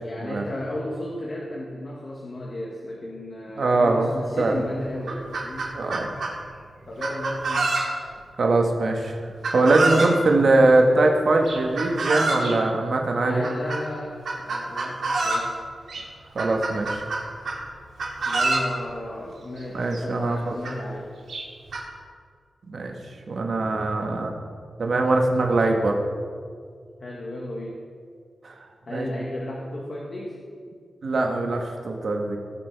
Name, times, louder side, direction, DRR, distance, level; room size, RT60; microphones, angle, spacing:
voice 1, 0.0-5.7 6.8-7.8 13.2-15.5 18.3-21.1 27.0-27.8 28.9-30.4, left 1 dB, 45° left, -3 dB, 1.5 m, -34 dB
voice 2, 3.6-4.1 4.4-4.6 5.7-6.1 8.4-9.2 9.5-13.4 16.3-16.9 19.7-20.5 22.7-22.9 23.3-24.4 24.8-26.0 28.4-28.5 28.9-29.0 31.0-32.4, right 2 dB, 55° right, 2 dB, 1.4 m, -21 dB
Chicken rooster, 4.4-4.5 4.9-6.3 7.0-8.1 9.4-10.2 11.5-12.5 13.4-13.8 14.3-15.5 15.9-16.0 16.4-17.6 18.0-18.7 19.6-19.7 19.9-20.0 20.6-20.7 21.3-21.8, right 3 dB, 85° right, 2.1 m, -26 dB
18.0 x 6.0 x 4.6 m, 2.1 s
wide cardioid pair, 140°, 0 cm